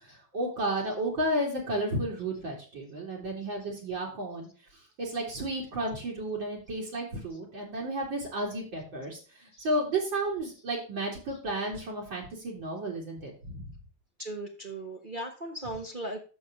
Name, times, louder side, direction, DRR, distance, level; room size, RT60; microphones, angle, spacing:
voice 1, 0.0-4.5 5.0-13.7, right 1 dB, 70° right, -3 dB, 3.3 m, -32 dB
voice 2, 14.2-16.2, right 1 dB, 30° right, 1 dB, 1.0 m, -37 dB
6.9 x 6.3 x 5.8 m, 0.36 s
omnidirectional pair, 2.1 m